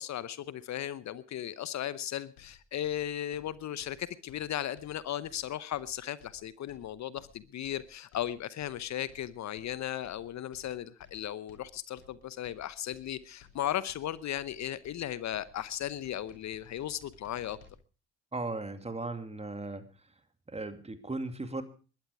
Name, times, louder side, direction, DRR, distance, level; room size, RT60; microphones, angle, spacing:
voice 1, 0.0-17.6, left 11 dB, 55° left, 17 dB, 0.9 m, -36 dB
sound 1, 2.4-17.7, left 6 dB, 80° left, 3.8 m, -59 dB
voice 2, 18.3-19.9 20.5-21.6, right 2 dB, 20° right, 9 dB, 2.5 m, -37 dB
21.0 x 12.0 x 4.8 m, 0.36 s
hypercardioid pair, 55°, 34 cm